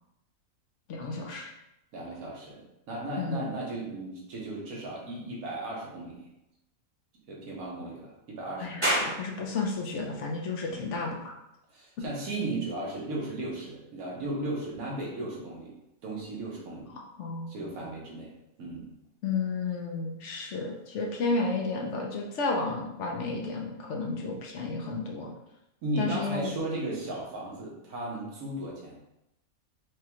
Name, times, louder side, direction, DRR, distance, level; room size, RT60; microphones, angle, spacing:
voice 1, 0.9-1.5 3.2-3.5 8.6-11.3 12.0-12.1 16.9-17.7 19.2-25.3 26.0-26.5, left 3 dB, 65° left, 0 dB, 0.9 m, -32 dB
voice 2, 1.9-2.6 2.9-6.2 7.3-9.1 9.4-9.5 10.7-11.0 11.7-15.7 16.0-16.9 17.5-18.3 18.6-18.9 25.8-29.0, right 2 dB, 85° right, -3 dB, 1.4 m, -36 dB
sound 1, 8.8-21.9, equal, 25° right, 1.1 m, -40 dB
4.8 x 2.2 x 2.9 m, 0.86 s
omnidirectional pair, 1.5 m